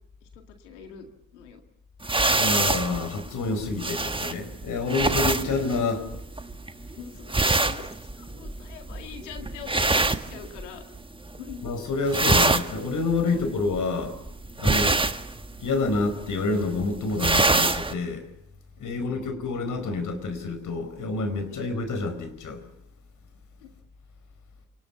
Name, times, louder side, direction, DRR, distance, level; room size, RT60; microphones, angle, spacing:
voice 1, 0.3-1.1 1.3-1.6 2.9-3.0 6.9-10.8 11.4-11.7 13.3-13.6 18.8-19.4 21.5-21.8 23.6-23.7, left 7 dB, 85° left, 5 dB, 2.1 m, -44 dB
sound 1, 2.0-11.0 11.3-11.7 12.0-17.9, right 2 dB, 15° right, 1.6 m, -25 dB
voice 2, 2.4-6.1 11.6-14.2 14.6-15.0 15.6-18.2 18.8-22.6, left 3 dB, 60° left, 8 dB, 4.8 m, -28 dB
27.5 x 19.5 x 7.1 m, 0.75 s
hypercardioid pair, 45°, 35 cm